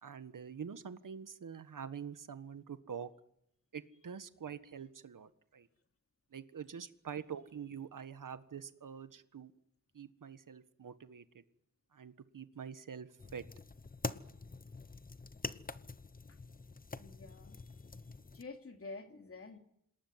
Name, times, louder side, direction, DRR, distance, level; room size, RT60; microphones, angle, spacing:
voice 1, 0.0-3.1 3.7-5.7 6.3-9.5 9.9-11.4 11.9-13.5, right 7 dB, 80° right, 11 dB, 1.6 m, -46 dB
sound 1, 13.2-18.4, left 3 dB, 25° left, 0.9 m, -45 dB
voice 2, 17.0-17.9 18.3-19.6, left 3 dB, 45° left, 5 dB, 3.0 m, -49 dB
27.0 x 19.0 x 9.6 m, 0.78 s
wide cardioid pair, 140°, 31 cm